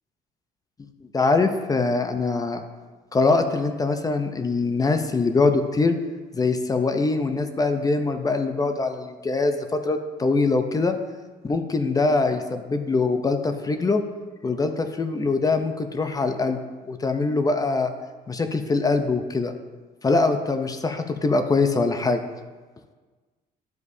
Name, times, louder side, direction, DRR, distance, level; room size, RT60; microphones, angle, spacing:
voice 1, 1.1-2.6 3.1-6.0 6.3-10.9 11.4-14.0 14.4-16.6 16.9-17.9 18.3-19.5 20.0-22.2, left 3 dB, 20° left, 7 dB, 0.6 m, -23 dB
11.5 x 4.9 x 2.7 m, 1.4 s
cardioid pair, 110°, 17 cm